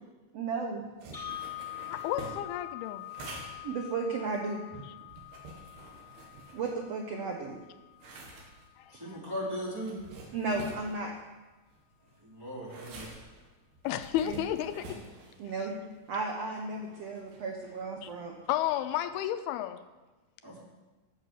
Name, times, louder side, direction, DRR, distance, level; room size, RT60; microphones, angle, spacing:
voice 1, 0.3-0.8 1.3-1.4 3.2-4.8 6.5-7.6 10.3-11.1 14.2-14.4 15.4-15.8 16.1-18.4, right 3 dB, 70° right, 1 dB, 1.5 m, -34 dB
sound 1, 1.0-7.2 7.6-19.2, right 2 dB, 90° right, 4.0 m, -49 dB
sound 2, 1.1-9.2, left 15 dB, 65° left, 0.5 m, -45 dB
voice 2, 1.9-3.1 8.8-9.2 13.8-15.0 18.0-18.1 18.5-19.8, left 12 dB, 85° left, 10 dB, 2.5 m, -32 dB
voice 3, 9.0-10.0 12.2-13.2 20.4-20.6, equal, 5° right, -7 dB, 3.5 m, -37 dB
14.5 x 7.0 x 6.4 m, 1.2 s
omnidirectional pair, 4.5 m